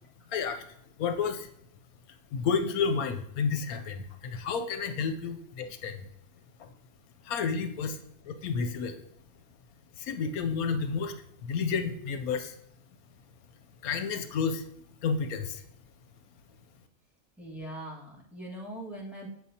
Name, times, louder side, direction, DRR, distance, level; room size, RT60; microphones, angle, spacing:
voice 1, 0.3-0.6 1.0-1.5 2.3-6.0 6.6-6.7 7.2-8.0 8.3-8.9 10.0-11.2 11.4-12.5 13.8-14.6 15.0-15.6, left 5 dB, 85° left, 8 dB, 1.1 m, -30 dB
voice 2, 17.4-19.3, right 1 dB, ahead, -5 dB, 1.5 m, -41 dB
7.8 x 6.5 x 2.8 m, 0.72 s
omnidirectional pair, 1.5 m